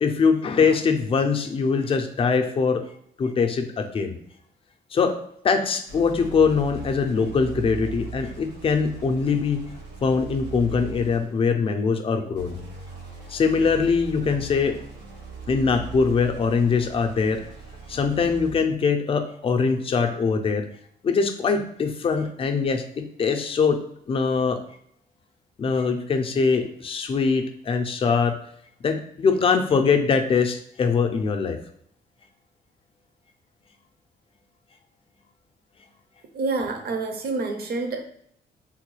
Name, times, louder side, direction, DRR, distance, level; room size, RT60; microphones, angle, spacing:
voice 1, 0.0-2.8 3.2-4.1 4.9-5.2 5.4-9.6 10.0-12.5 13.3-14.8 15.5-17.4 17.9-20.7 21.0-23.8 24.1-24.6 25.6-28.4 28.8-31.6, left 5 dB, 35° left, 6 dB, 0.4 m, -22 dB
sound 1, 5.9-11.5 12.3-18.8, right 4 dB, 85° right, 1.1 m, -39 dB
voice 2, 36.3-38.0, right 3 dB, 65° right, 5 dB, 0.6 m, -27 dB
3.6 x 2.2 x 3.1 m, 0.68 s
cardioid pair, 115°, 17 cm